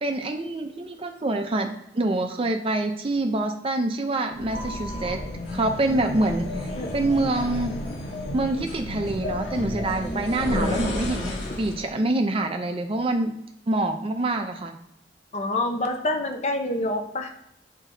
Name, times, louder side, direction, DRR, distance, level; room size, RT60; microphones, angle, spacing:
voice 1, 0.0-5.2 5.5-7.7 8.3-13.3 13.7-14.7, right 2 dB, 30° right, 5 dB, 0.5 m, -26 dB
sound 1, 4.3-11.8, left 1 dB, 80° left, 2.6 m, -31 dB
voice 2, 15.3-17.3, left 1 dB, 40° left, 4 dB, 0.7 m, -27 dB
8.8 x 4.5 x 2.7 m, 0.79 s
head